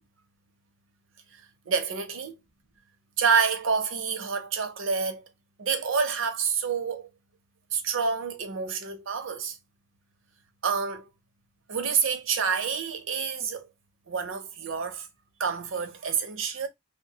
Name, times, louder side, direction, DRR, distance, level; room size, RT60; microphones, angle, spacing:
voice 1, 1.3-2.3 3.2-5.3 5.6-7.1 7.7-9.6 10.6-11.1 11.7-13.7 14.1-15.1 15.4-16.7, right 6 dB, 80° right, 0.6 m, -28 dB
2.7 x 2.2 x 2.7 m
head